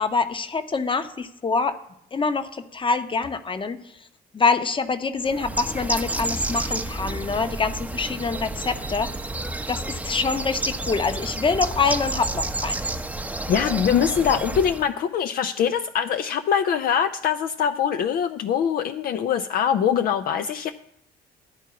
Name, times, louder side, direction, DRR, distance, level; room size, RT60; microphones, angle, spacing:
voice 1, 0.0-1.8 2.1-4.1 4.3-9.1 9.7-12.8, left 4 dB, 25° left, 10 dB, 0.9 m, -25 dB
Bird, 5.2-14.9, right 2 dB, 5° right, 0.8 m, -30 dB
voice 2, 13.5-20.7, left 8 dB, 50° left, 9 dB, 0.5 m, -23 dB
11.5 x 4.5 x 8.2 m, 0.78 s
figure-of-eight pair, 50°, 20 cm